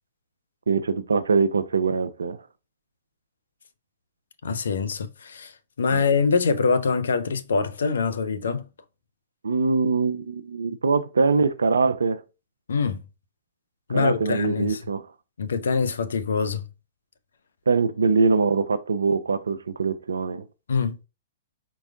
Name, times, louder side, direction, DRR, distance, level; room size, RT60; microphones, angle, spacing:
voice 1, 0.7-2.4 5.9-6.0 9.4-12.2 13.9-15.0 17.7-20.5, right 4 dB, 80° right, 0.5 m, -23 dB
voice 2, 4.4-5.5 5.8-8.7 12.7-13.0 13.9-14.8 15.4-16.6 20.7-21.0, left 5 dB, 75° left, 0.6 m, -24 dB
4.5 x 4.1 x 2.3 m
figure-of-eight pair, 110°, 0 cm